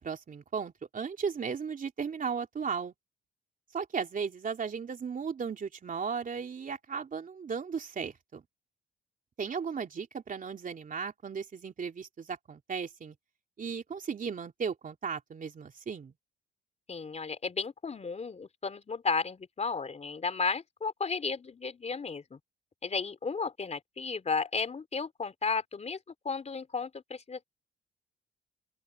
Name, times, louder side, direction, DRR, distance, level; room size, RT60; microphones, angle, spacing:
voice 1, 0.0-2.9 3.7-8.4 9.4-13.1 13.6-16.1, right 6 dB, 45° right, 3.3 m, -36 dB
voice 2, 16.9-22.4 22.8-26.0 26.3-27.5, left 4 dB, 35° left, 3.6 m, -33 dB
open air
cardioid pair, 90°, 20 cm